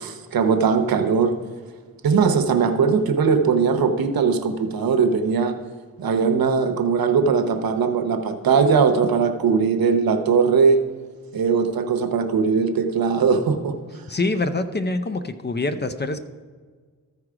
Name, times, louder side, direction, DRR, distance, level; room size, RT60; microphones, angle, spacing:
voice 1, 0.0-1.3 2.0-5.6 6.0-10.8 11.3-13.7, right 5 dB, 80° right, 7 dB, 0.8 m, -20 dB
voice 2, 14.1-16.2, left 2 dB, 30° left, 10 dB, 0.5 m, -25 dB
13.5 x 4.7 x 4.9 m, 1.5 s
cardioid pair, 80°, 35 cm